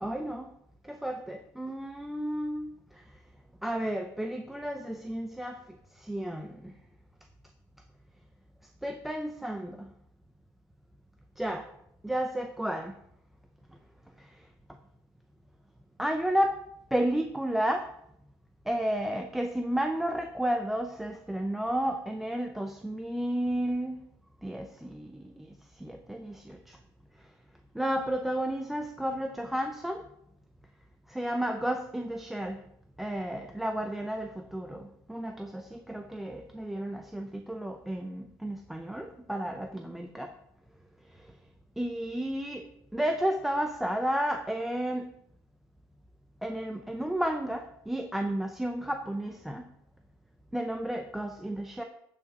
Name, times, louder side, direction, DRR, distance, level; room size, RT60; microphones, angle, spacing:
voice 1, 0.0-0.5 0.8-2.8 3.6-5.6 6.0-6.7 8.8-9.9 11.4-11.7 12.0-12.9 16.0-16.5 16.9-17.9 18.7-24.0 24.4-25.5 25.8-26.8 27.7-30.0 31.1-32.6 33.0-40.3 41.8-45.1 46.4-49.7 50.5-51.8, right 1 dB, 5° right, 5 dB, 0.5 m, -32 dB
15.0 x 5.8 x 4.0 m, 0.74 s
cardioid pair, 175°, 7 cm